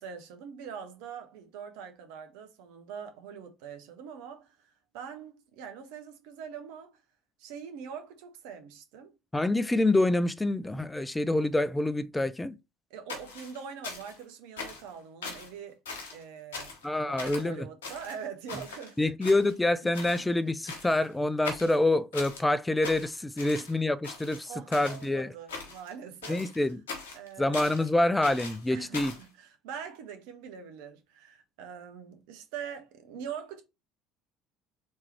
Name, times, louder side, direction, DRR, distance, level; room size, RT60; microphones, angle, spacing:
voice 1, 0.0-7.0 7.4-9.1 12.9-15.8 16.1-16.7 17.0-19.0 19.2-19.5 19.8-20.3 23.4-23.6 24.4-26.6 27.1-27.6 28.7-33.6, right 7 dB, 65° right, 0.9 m, -43 dB
voice 2, 9.3-12.5 16.8-17.7 19.0-25.3 26.3-26.8 27.4-29.1, left 2 dB, 10° left, 0.3 m, -26 dB
sound 1, 13.1-14.2 14.6-14.9 15.2-15.5 15.9-16.2 16.5-16.9 17.2-17.5 17.8-18.9 19.2-19.7 19.9-20.3 20.7-21.1 21.4-22.4 22.8-23.7 24.0-25.1 25.5-25.9 26.2-27.9 28.2-29.3, left 4 dB, 75° left, 1.3 m, -41 dB
3.6 x 3.2 x 4.3 m
figure-of-eight pair, 60°, 0 cm